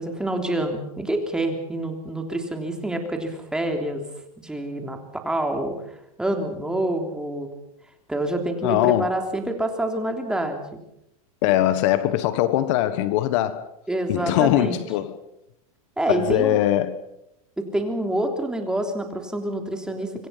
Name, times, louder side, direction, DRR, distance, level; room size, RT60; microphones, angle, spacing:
voice 1, 0.0-4.0 4.4-5.7 6.2-7.5 8.1-10.8 11.5-11.7 13.9-14.8 16.0-16.6 17.6-20.3, right 1 dB, 5° right, 3.4 m, -27 dB
voice 2, 8.6-9.1 11.4-13.6 14.1-15.2 16.1-17.0, left 13 dB, 55° left, 1.5 m, -21 dB
26.0 x 24.0 x 5.9 m
supercardioid pair, 145°, 19 cm